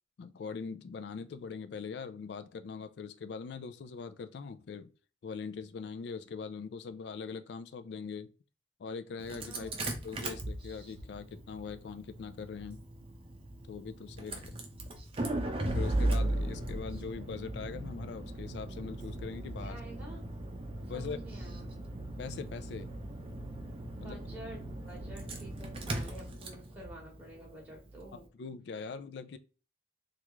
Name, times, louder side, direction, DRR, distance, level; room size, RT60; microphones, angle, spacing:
voice 1, 0.2-4.9 5.2-8.3 8.8-9.7 10.0-12.8 13.7-14.6 15.4-19.8 20.9-21.2 22.2-22.9 24.0-24.2 28.4-29.4, left 5 dB, 65° left, 0.3 m, -42 dB
Engine starting, 9.2-28.2, right 1 dB, 30° right, 0.5 m, -38 dB
voice 2, 9.5-9.8 19.6-20.2 20.9-21.7 23.9-28.3, right 1 dB, 10° right, 0.9 m, -49 dB
3.3 x 2.4 x 3.0 m
head